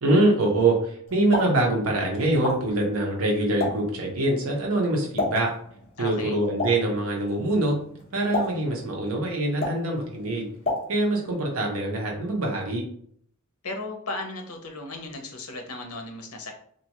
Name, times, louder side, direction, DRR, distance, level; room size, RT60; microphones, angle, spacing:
voice 1, 0.0-5.5 6.0-7.8 8.1-10.5 10.9-12.8, right 2 dB, 70° right, 0 dB, 0.8 m, -24 dB
Explosion, 1.1-11.3, left 2 dB, 30° left, 0.8 m, -34 dB
voice 2, 6.0-6.4 13.6-16.5, left 2 dB, 80° left, 4 dB, 0.6 m, -35 dB
2.7 x 2.2 x 2.9 m, 0.63 s
head